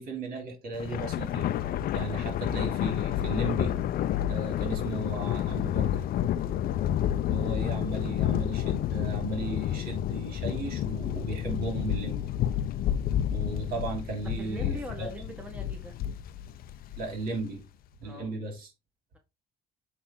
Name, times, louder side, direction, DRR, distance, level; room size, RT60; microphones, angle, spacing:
voice 1, 0.0-1.5 1.9-3.8 4.3-6.0 7.3-12.2 13.3-15.1 17.0-17.6 18.0-18.7, right 2 dB, 60° right, 3.3 m, -35 dB
Thunder, 0.7-17.3, left 11 dB, 60° left, 0.5 m, -30 dB
voice 2, 14.2-15.9 18.0-18.3, equal, 5° right, 1.3 m, -41 dB
8.7 x 3.4 x 3.8 m
cardioid pair, 110°, 17 cm